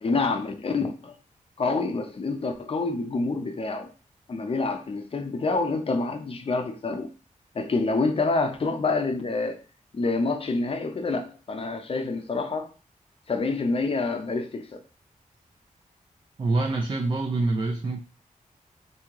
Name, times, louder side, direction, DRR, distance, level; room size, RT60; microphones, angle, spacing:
voice 1, 0.0-1.1 1.6-3.9 4.3-7.1 7.5-9.6 9.9-12.7 13.3-14.8, left 3 dB, 45° left, 0.5 m, -27 dB
voice 2, 16.4-18.0, right 2 dB, 35° right, 0.4 m, -25 dB
3.0 x 2.7 x 3.5 m
wide cardioid pair, 120°, 14 cm